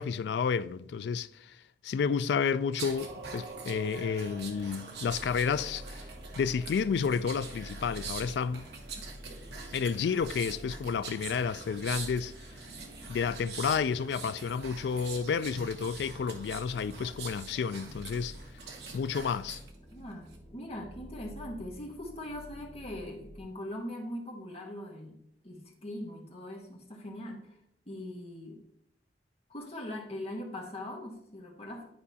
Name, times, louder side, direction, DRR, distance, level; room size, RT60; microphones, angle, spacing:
voice 1, 0.0-1.6 1.8-6.0 6.4-8.7 9.7-12.3 13.1-18.3 18.9-19.6, left 6 dB, 70° left, 0.3 m, -31 dB
sound 1, 2.7-19.7 20.1-20.4, right 4 dB, 70° right, 1.1 m, -44 dB
sound 2, 5.0-23.4, equal, 5° left, 1.3 m, -49 dB
voice 2, 19.9-25.2 25.4-27.5 27.9-28.6 29.5-31.9, left 1 dB, 35° left, 1.3 m, -41 dB
10.5 x 4.8 x 2.8 m
head